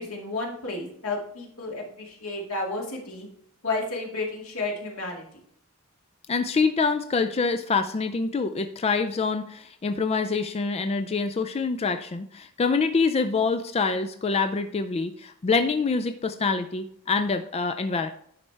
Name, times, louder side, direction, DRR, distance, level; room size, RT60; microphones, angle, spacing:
voice 1, 0.0-3.3 3.6-5.2, left 2 dB, 85° left, -1 dB, 2.2 m, -32 dB
voice 2, 6.3-18.1, left 4 dB, 30° left, 8 dB, 0.4 m, -25 dB
10.5 x 4.3 x 3.3 m, 0.67 s
head